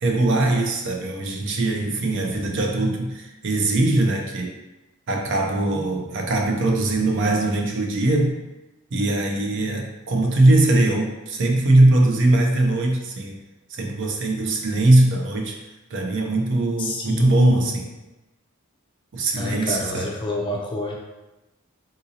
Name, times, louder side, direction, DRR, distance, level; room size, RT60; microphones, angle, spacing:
voice 1, 0.0-4.5 5.1-8.4 8.9-13.4 13.7-15.6 15.9-17.8 19.1-20.1, right 2 dB, 55° right, 1 dB, 0.5 m, -21 dB
voice 2, 16.8-17.8 19.3-20.9, left 1 dB, 20° left, -1 dB, 0.4 m, -27 dB
3.8 x 2.6 x 2.7 m, 1.0 s
head